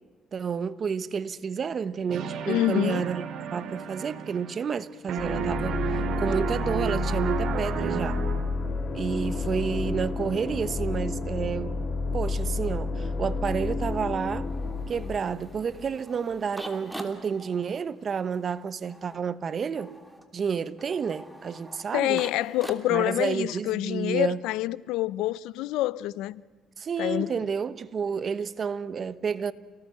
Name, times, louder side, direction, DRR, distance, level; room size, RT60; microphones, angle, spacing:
voice 1, 0.3-3.3 3.5-8.2 8.9-11.7 12.1-14.5 14.9-20.0 20.3-22.2 22.9-24.4 26.8-29.5, right 6 dB, 40° right, 1.1 m, -30 dB
sound 1, 2.1-4.8 5.1-8.7, right 6 dB, 65° right, 2.5 m, -32 dB
voice 2, 2.5-3.1 21.9-26.4 27.0-27.3, left 16 dB, 85° left, 0.6 m, -27 dB
sound 2, 5.2-16.0, left 3 dB, 35° left, 3.5 m, -30 dB
sound 3, 14.4-23.3, right 1 dB, 5° right, 2.9 m, -45 dB
29.5 x 18.5 x 8.0 m
cardioid pair, 100°, 0 cm